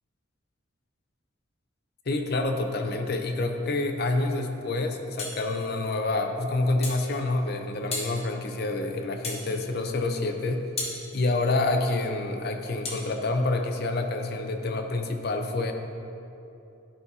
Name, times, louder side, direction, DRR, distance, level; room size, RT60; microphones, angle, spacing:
voice 1, 2.1-10.7 11.1-15.7, left 2 dB, 50° left, 5 dB, 0.6 m, -27 dB
sound 1, 5.2-5.4 6.8-7.0 7.9-8.1 9.2-9.5 10.8-11.0 12.8-13.0, left 3 dB, 30° left, 1.1 m, -33 dB
12.0 x 5.5 x 2.7 m, 2.8 s
head